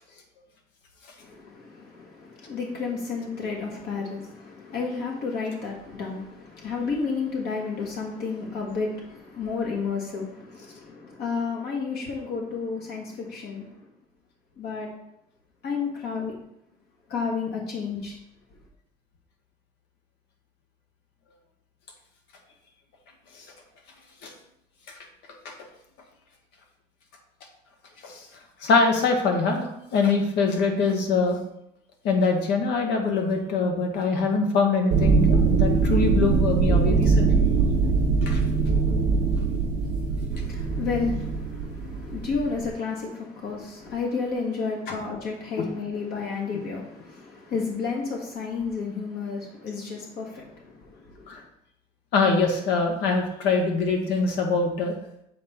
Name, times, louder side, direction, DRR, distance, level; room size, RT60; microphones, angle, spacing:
voice 1, 1.2-13.8 14.6-14.9 15.6-16.3 17.1-18.1 40.3-51.4, left 5 dB, 70° left, -2 dB, 1.4 m, -31 dB
voice 2, 28.6-31.4 32.0-37.5 38.2-38.4 45.6-45.7 51.3-51.4 52.1-54.9, left 4 dB, 85° left, 2 dB, 1.4 m, -23 dB
sound 1, 34.9-42.7, right 4 dB, 90° right, 0.8 m, -22 dB
7.6 x 4.1 x 3.6 m, 0.78 s
cardioid pair, 110°, 17 cm